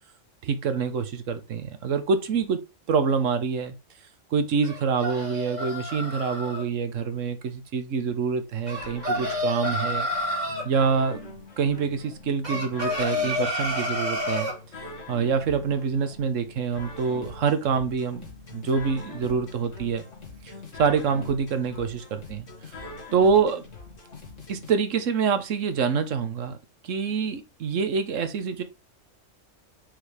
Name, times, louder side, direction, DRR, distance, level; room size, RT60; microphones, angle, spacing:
voice 1, 0.4-3.7 4.3-10.1 10.6-11.2 11.6-14.5 15.1-20.0 20.8-22.5 23.1-23.6 24.5-26.5 26.8-28.6, right 5 dB, 85° right, 1.3 m, -26 dB
sound 1, 4.6-6.6 8.7-10.7 12.4-14.6, left 1 dB, 35° right, 2.3 m, -29 dB
sound 2, 8.7-24.7, left 2 dB, 80° left, 2.4 m, -43 dB
5.8 x 5.0 x 3.4 m
omnidirectional pair, 1.3 m